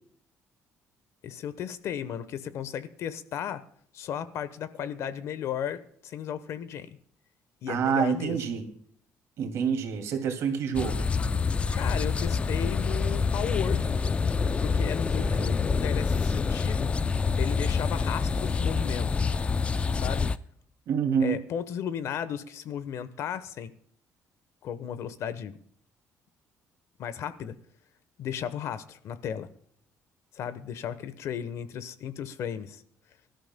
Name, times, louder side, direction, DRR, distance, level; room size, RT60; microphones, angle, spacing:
voice 1, 1.2-3.6 3.9-7.0 7.6-8.4 11.7-13.9 14.6-16.9 17.4-19.2 19.9-20.3 21.2-23.7 24.6-25.5 27.0-27.6 28.2-29.5 30.3-32.8, left 9 dB, 60° left, 14 dB, 1.0 m, -35 dB
voice 2, 7.7-8.7 9.4-11.1 15.2-15.5 20.9-21.4, right 7 dB, 65° right, 5 dB, 2.4 m, -27 dB
sound 1, 10.7-20.4, left 5 dB, 20° left, 0.4 m, -27 dB
24.0 x 13.0 x 2.2 m, 0.63 s
cardioid pair, 155°, 5 cm